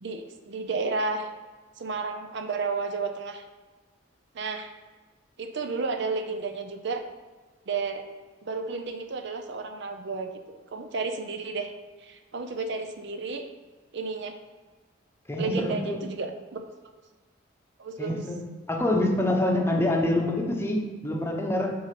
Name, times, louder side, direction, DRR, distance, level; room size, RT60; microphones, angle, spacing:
voice 1, 0.0-1.3 1.8-3.4 4.3-4.7 5.4-7.0 7.7-8.0 8.4-11.7 12.0-13.4 13.9-14.4 15.4-16.6 17.8-18.2, right 4 dB, 60° right, 6 dB, 0.6 m, -32 dB
voice 2, 15.3-16.0 18.0-18.4 18.7-21.7, left 1 dB, 10° left, 0 dB, 0.9 m, -26 dB
6.5 x 4.0 x 5.8 m, 1.4 s
head